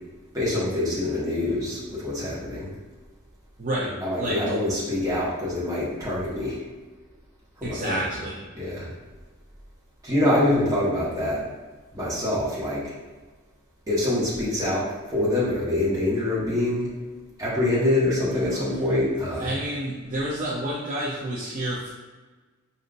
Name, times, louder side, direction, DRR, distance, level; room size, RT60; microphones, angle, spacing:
voice 1, 0.3-2.7 4.0-6.6 7.6-8.0 8.6-8.9 10.0-11.4 11.9-12.9 13.9-16.9 17.4-19.5, left 1 dB, 15° right, -8 dB, 1.4 m, -25 dB
voice 2, 3.6-4.4 7.6-8.5 18.5-18.6 19.4-21.9, right 1 dB, 40° right, -7 dB, 0.6 m, -29 dB
5.1 x 2.8 x 2.5 m, 1.3 s
head